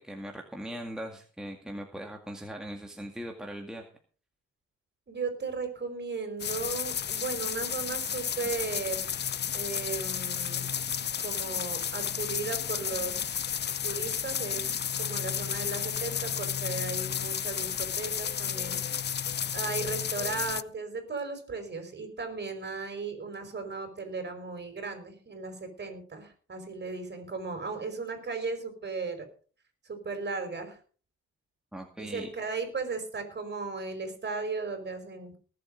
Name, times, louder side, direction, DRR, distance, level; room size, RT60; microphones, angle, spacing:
voice 1, 0.0-3.9 31.7-32.3, equal, ahead, 2 dB, 2.1 m, -40 dB
voice 2, 5.1-9.1 9.5-10.6 11.2-13.4 13.8-18.8 19.5-29.3 29.8-30.8 32.0-35.4, right 4 dB, 35° right, 6 dB, 5.0 m, -36 dB
sound 1, 6.4-20.6, left 8 dB, 35° left, 0.6 m, -32 dB
19.0 x 7.9 x 5.2 m, 0.40 s
cardioid pair, 90°, 30 cm